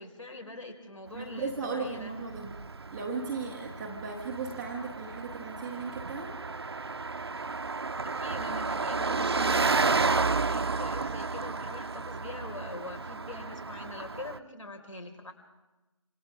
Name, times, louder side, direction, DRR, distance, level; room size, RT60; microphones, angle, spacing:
voice 1, 0.0-2.1 8.0-15.3, left 2 dB, 65° left, 3 dB, 5.4 m, -43 dB
voice 2, 1.1-2.5 2.9-6.4, right 4 dB, 5° right, -4 dB, 0.6 m, -36 dB
Car passing by, 1.2-14.4, right 4 dB, 45° right, 0.7 m, -32 dB
28.0 x 26.5 x 3.8 m, 1.1 s
figure-of-eight pair, 160°, 18 cm